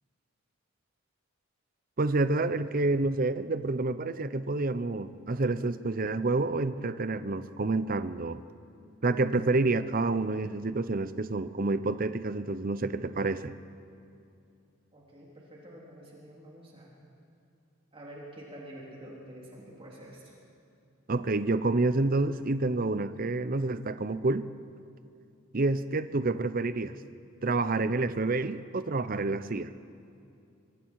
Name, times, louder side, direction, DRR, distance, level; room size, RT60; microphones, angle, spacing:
voice 1, 2.0-8.4 9.0-13.5 21.1-24.5 25.5-27.0 27.4-29.7, right 3 dB, 45° right, 13 dB, 0.7 m, -28 dB
voice 2, 14.9-16.9 17.9-20.4, right 1 dB, 25° right, -4 dB, 3.7 m, -47 dB
25.5 x 24.0 x 4.8 m, 2.6 s
head